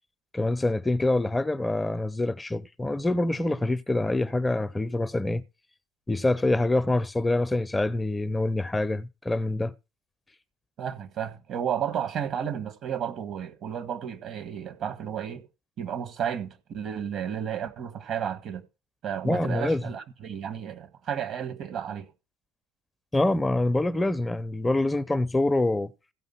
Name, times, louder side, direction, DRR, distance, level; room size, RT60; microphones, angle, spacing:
voice 1, 0.3-5.4 6.1-9.7 19.2-19.8 23.1-25.9, left 2 dB, 15° left, 0.7 m, -25 dB
voice 2, 10.8-15.5 15.8-18.6 19.0-22.1, right 8 dB, 55° right, 1.7 m, -32 dB
16.0 x 5.4 x 5.7 m
hypercardioid pair, 60°, 0 cm